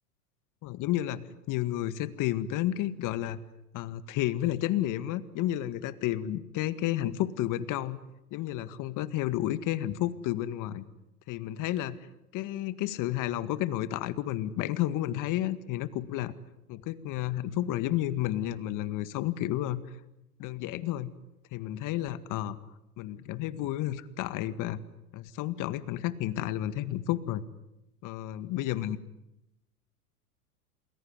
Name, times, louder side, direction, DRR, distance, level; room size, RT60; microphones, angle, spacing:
voice 1, 0.6-3.4 3.7-8.0 8.3-10.9 11.3-12.0 12.3-16.3 16.7-19.8 20.4-21.1 21.5-22.6 23.0-24.8 25.1-27.4 28.0-29.0, left 13 dB, 40° left, 14 dB, 1.9 m, -31 dB
28.0 x 21.0 x 9.7 m, 0.89 s
hypercardioid pair, 105°, 47 cm